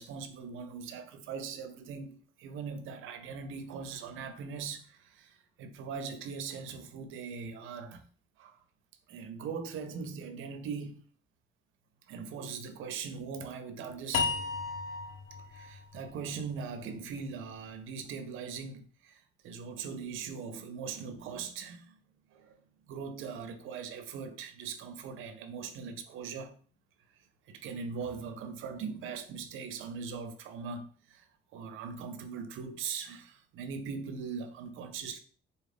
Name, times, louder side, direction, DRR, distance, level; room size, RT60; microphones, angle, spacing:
voice 1, 0.0-8.0 8.4-8.6 9.1-11.0 12.1-14.3 15.5-22.0 22.3-22.6 22.9-26.6 27.5-31.2 31.5-35.2, right 5 dB, 85° right, 0.6 m, -40 dB
sound 1, 14.1-17.3, left 5 dB, 85° left, 0.5 m, -35 dB
4.1 x 2.4 x 3.4 m
cardioid pair, 90°, 20 cm